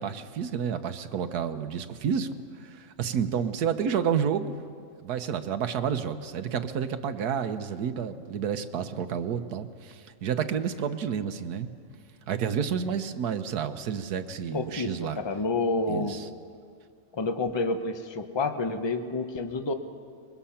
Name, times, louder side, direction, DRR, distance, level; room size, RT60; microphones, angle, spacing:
voice 1, 0.0-2.3 2.6-4.5 5.0-11.7 12.3-15.2 15.9-16.3, right 7 dB, 80° right, 9 dB, 1.4 m, -30 dB
voice 2, 14.5-16.2 17.1-19.7, left 3 dB, 20° left, 7 dB, 0.8 m, -29 dB
24.5 x 21.5 x 5.8 m, 2.2 s
omnidirectional pair, 1.6 m